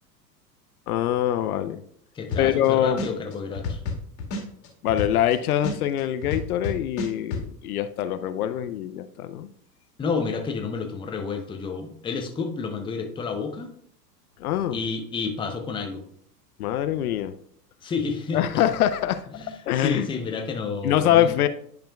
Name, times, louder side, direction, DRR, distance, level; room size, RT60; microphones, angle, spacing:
voice 1, 0.9-1.8 2.4-3.0 4.8-9.5 14.4-14.8 16.6-17.3 18.3-19.2 19.7-20.1 20.8-21.5, left 11 dB, 65° left, 12 dB, 0.5 m, -24 dB
voice 2, 2.1-3.8 10.0-13.7 14.7-16.1 17.8-18.4 19.3-21.4, left 4 dB, 10° left, 4 dB, 0.6 m, -30 dB
sound 1, 2.3-2.7 3.0-5.3 5.6-7.4, left 3 dB, 45° left, 1.8 m, -30 dB
10.5 x 5.0 x 2.3 m, 0.65 s
figure-of-eight pair, 95°, 50 cm